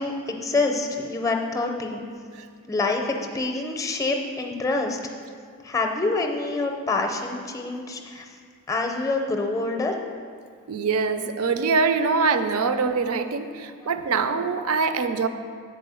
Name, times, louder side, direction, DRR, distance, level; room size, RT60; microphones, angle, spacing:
voice 1, 0.0-2.0 2.7-5.1 5.6-8.4 8.7-10.0, left 3 dB, 15° left, 3 dB, 0.5 m, -26 dB
voice 2, 10.7-15.3, right 4 dB, 80° right, 9 dB, 0.5 m, -24 dB
7.2 x 4.4 x 6.9 m, 2.1 s
head